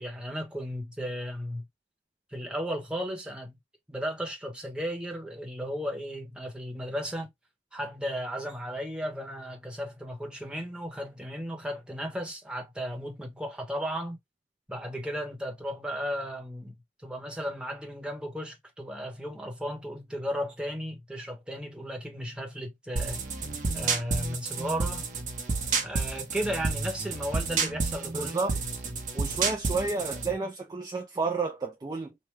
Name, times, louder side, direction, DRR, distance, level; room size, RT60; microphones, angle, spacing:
voice 1, 0.0-1.7 2.3-3.6 3.9-7.3 7.7-14.2 14.7-16.7 17.0-23.2 23.7-25.0 25.8-28.3, equal, 5° right, 0.9 m, -35 dB
sound 1, 23.0-30.3, right 4 dB, 45° right, 0.7 m, -30 dB
voice 2, 28.1-28.5 29.1-32.2, right 3 dB, 20° right, 0.3 m, -31 dB
3.2 x 2.1 x 3.1 m
head